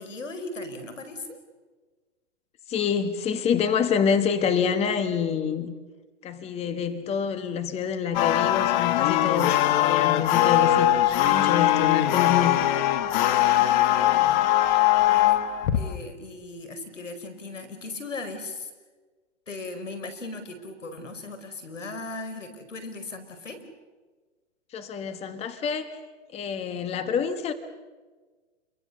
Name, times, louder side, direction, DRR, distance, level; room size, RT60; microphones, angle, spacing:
voice 1, 0.0-1.4 13.2-14.5 15.0-15.4 15.7-18.7 19.5-23.6, left 2 dB, 90° left, 4.9 m, -38 dB
voice 2, 2.7-5.7 6.2-12.6 24.7-26.0 26.3-27.5, left 7 dB, 15° left, 1.4 m, -27 dB
sound 1, 8.1-16.0, left 13 dB, 40° left, 1.5 m, -21 dB
29.5 x 23.0 x 6.8 m
hypercardioid pair, 135°, 37 cm